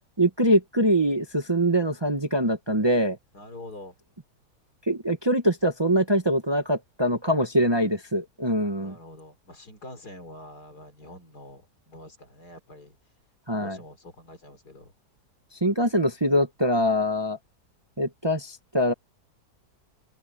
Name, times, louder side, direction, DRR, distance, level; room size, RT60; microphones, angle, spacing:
voice 1, 0.2-3.2 4.9-8.9 13.5-13.8 15.6-17.4 18.0-18.9, equal, 20° right, 1.1 m, -23 dB
voice 2, 3.3-4.0 8.8-13.0 13.6-14.9, left 1 dB, 75° left, 4.7 m, -45 dB
open air
omnidirectional pair, 1.7 m